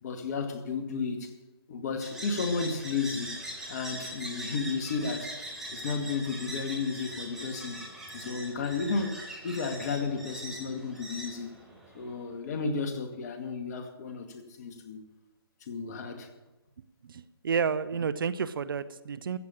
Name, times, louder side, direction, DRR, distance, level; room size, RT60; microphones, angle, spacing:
voice 1, 0.0-1.3 1.7-3.4 3.7-5.3 5.7-7.8 8.1-11.6 11.9-15.0 15.7-16.3, left 4 dB, 45° left, 5 dB, 2.2 m, -33 dB
sound 1, 2.0-12.2, right 1 dB, 5° right, 4.5 m, -41 dB
voice 2, 17.0-19.4, right 6 dB, 60° right, 16 dB, 0.8 m, -30 dB
15.0 x 7.6 x 8.7 m, 1.1 s
hypercardioid pair, 145°, 13 cm